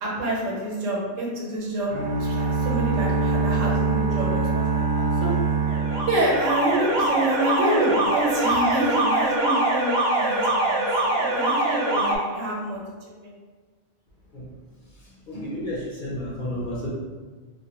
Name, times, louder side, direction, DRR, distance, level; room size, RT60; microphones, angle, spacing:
voice 1, 0.0-1.9 2.2-5.3 6.1-12.8 13.2-13.3, right 1 dB, 85° right, -3 dB, 1.1 m, -27 dB
sound 1, 1.9-6.9, right 4 dB, 30° right, 0.5 m, -24 dB
Alarm, 5.7-12.2, right 1 dB, 65° right, 0.8 m, -23 dB
voice 2, 14.9-16.9, left 1 dB, 55° left, -6 dB, 0.7 m, -32 dB
2.4 x 2.2 x 2.8 m, 1.4 s
omnidirectional pair, 1.3 m